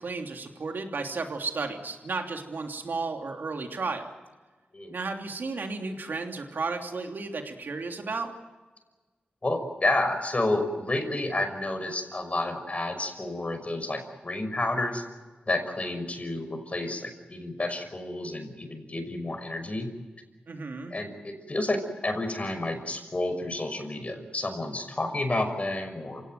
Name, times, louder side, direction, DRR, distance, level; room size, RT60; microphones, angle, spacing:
voice 1, 0.0-4.1 4.9-8.3 20.5-20.9, right 3 dB, 75° right, 4 dB, 3.1 m, -33 dB
voice 2, 9.4-15.1 15.5-19.9 20.9-26.3, left 2 dB, 40° left, 7 dB, 5.9 m, -30 dB
27.5 x 17.5 x 9.3 m, 1.3 s
cardioid pair, 45°, 3 cm